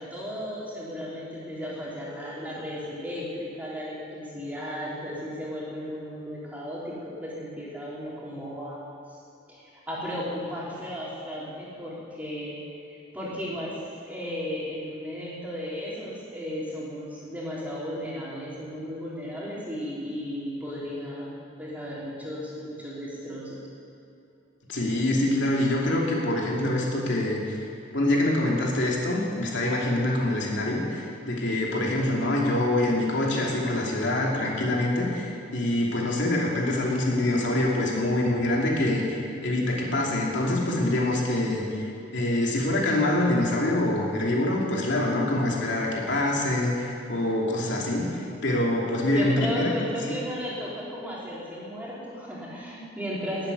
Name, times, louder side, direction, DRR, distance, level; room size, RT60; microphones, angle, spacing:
voice 1, 0.0-8.8 9.5-21.3 21.6-23.6 49.1-53.5, equal, 10° right, -7 dB, 3.7 m, -35 dB
voice 2, 24.7-27.6 27.9-49.7, left 1 dB, 70° left, -2 dB, 2.8 m, -25 dB
14.0 x 8.9 x 9.9 m, 2.8 s
head